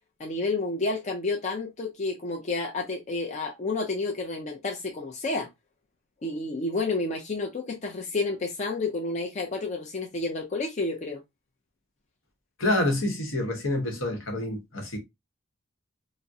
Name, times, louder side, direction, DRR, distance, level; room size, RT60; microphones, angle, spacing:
voice 1, 0.2-5.5 6.2-11.2, left 3 dB, 35° left, 0.4 m, -30 dB
voice 2, 12.6-15.0, left 1 dB, 75° left, 0.9 m, -27 dB
3.5 x 2.0 x 2.5 m
head